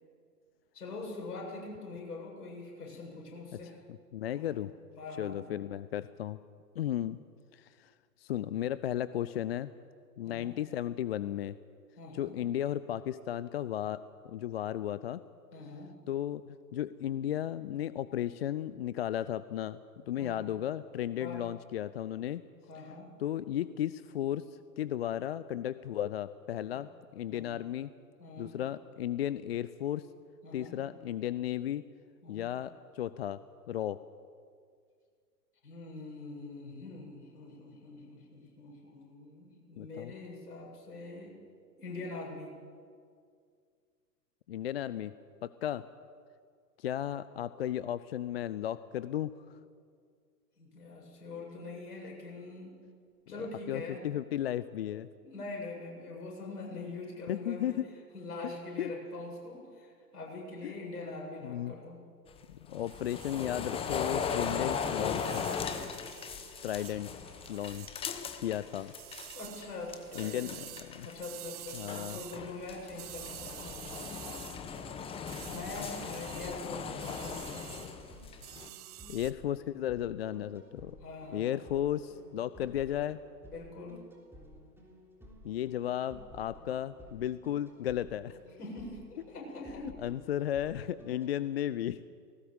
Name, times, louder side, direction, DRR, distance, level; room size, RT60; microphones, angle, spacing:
voice 1, 0.7-3.8 4.3-4.6 5.0-5.5 10.2-10.6 12.0-12.4 15.5-15.9 20.2-20.4 21.2-21.4 22.7-23.1 26.7-26.8 27.3-27.5 28.2-28.5 30.4-30.8 32.2-32.5 35.6-41.4 41.8-42.5 50.6-52.8 53.3-54.1 55.2-57.8 58.1-62.0 69.3-70.5 71.0-74.1 75.4-77.8 81.0-81.7 83.5-84.0 88.6-89.9, left 3 dB, 65° left, -1 dB, 7.5 m, -43 dB
voice 2, 3.9-4.7 5.2-6.4 6.8-7.2 7.5-9.7 10.2-11.6 12.1-15.2 16.1-22.4 23.2-27.9 28.4-30.1 30.5-31.8 32.3-33.4 33.7-34.0 39.8-40.1 44.5-45.1 45.4-45.8 46.8-49.6 53.7-55.1 57.3-57.9 58.4-58.5 58.8-58.9 60.6-60.7 61.4-61.8 62.5-65.5 66.6-67.1 67.5-68.0 68.4-68.9 70.1-71.1 71.7-72.2 79.1-81.0 81.3-83.2 85.4-88.4 90.0-92.0, left 11 dB, 40° left, 15 dB, 0.5 m, -35 dB
sound 1, 62.3-69.4 69.6-71.2 71.5-78.7, left 6 dB, 10° left, 1.0 m, -38 dB
sound 2, 62.8-79.3, right 15 dB, 25° right, 0.6 m, -50 dB
sound 3, 73.7-91.3, equal, 5° right, 3.6 m, -54 dB
19.5 x 18.5 x 8.1 m, 2.1 s
figure-of-eight pair, 115°, 49 cm